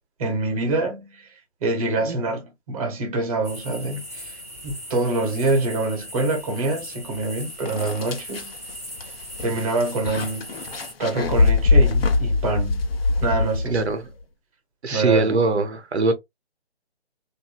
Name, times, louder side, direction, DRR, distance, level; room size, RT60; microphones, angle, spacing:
voice 1, 0.2-1.3 1.6-4.4 4.6-8.5 9.4-10.5 11.0-12.8 13.2-13.8 14.9-15.4, right 2 dB, 35° right, 1.0 m, -25 dB
sound 1, 3.4-10.9, equal, 15° right, 0.4 m, -39 dB
sound 2, 7.2-7.3 7.7-14.0, left 3 dB, 60° left, 0.8 m, -22 dB
voice 2, 13.7-14.0 14.8-16.1, right 3 dB, 85° right, 0.8 m, -22 dB
2.9 x 2.6 x 2.2 m
figure-of-eight pair, 155°, 33 cm